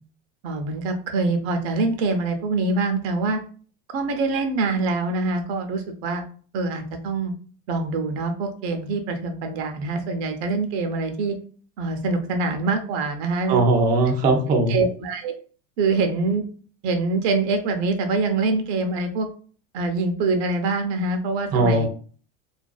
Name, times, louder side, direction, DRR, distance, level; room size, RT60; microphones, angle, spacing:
voice 1, 0.4-3.4 3.9-6.2 6.5-7.3 7.7-11.4 11.8-13.6 14.7-15.3 15.8-16.4 16.8-19.3 19.7-21.9, right 3 dB, 70° right, 5 dB, 0.6 m, -24 dB
voice 2, 13.5-14.8 21.5-21.9, right 2 dB, 25° right, 2 dB, 0.4 m, -19 dB
2.4 x 2.2 x 2.3 m, 0.42 s
supercardioid pair, 130°, 33 cm